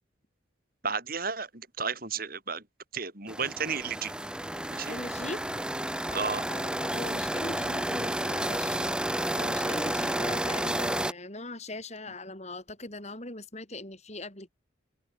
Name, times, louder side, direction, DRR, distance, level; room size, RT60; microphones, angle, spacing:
voice 1, 0.8-2.6 2.9-4.1 4.7-5.0 6.1-6.4, right 5 dB, 45° right, 5.0 m, -33 dB
sound 1, 3.3-11.1, right 1 dB, 5° right, 4.7 m, -31 dB
voice 2, 4.9-5.4 6.5-9.0 9.4-14.5, left 2 dB, 35° left, 6.2 m, -40 dB
head